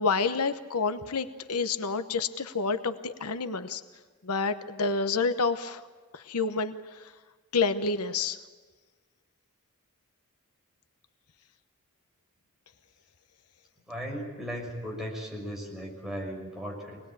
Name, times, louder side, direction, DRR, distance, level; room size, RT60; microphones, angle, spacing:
voice 1, 0.0-3.8 4.2-5.8 6.1-6.7 7.5-8.4, left 4 dB, 85° left, 10 dB, 1.0 m, -28 dB
voice 2, 13.9-17.0, equal, ahead, -2 dB, 6.0 m, -37 dB
25.5 x 19.5 x 8.9 m, 1.3 s
head